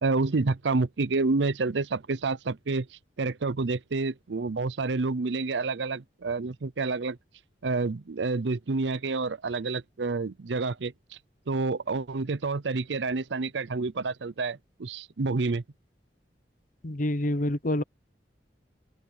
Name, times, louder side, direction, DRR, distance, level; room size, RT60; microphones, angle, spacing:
voice 1, 0.0-7.2 7.6-11.2 11.5-15.6, right 3 dB, 85° right, 0.6 m, -29 dB
voice 2, 16.8-17.8, left 1 dB, 50° left, 0.9 m, -27 dB
open air
head